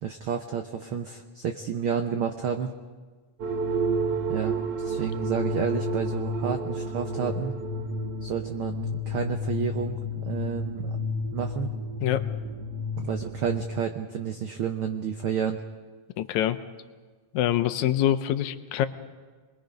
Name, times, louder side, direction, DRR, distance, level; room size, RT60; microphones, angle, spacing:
voice 1, 0.0-2.7 4.3-7.5 8.2-11.0 11.3-11.7 13.0-15.6, right 7 dB, 85° right, 5 dB, 1.1 m, -30 dB
sound 1, 3.4-13.7, equal, 55° right, 2.1 m, -30 dB
voice 2, 16.2-16.6 17.3-18.9, left 11 dB, 75° left, 11 dB, 2.0 m, -25 dB
27.5 x 21.5 x 5.2 m, 1.4 s
omnidirectional pair, 3.6 m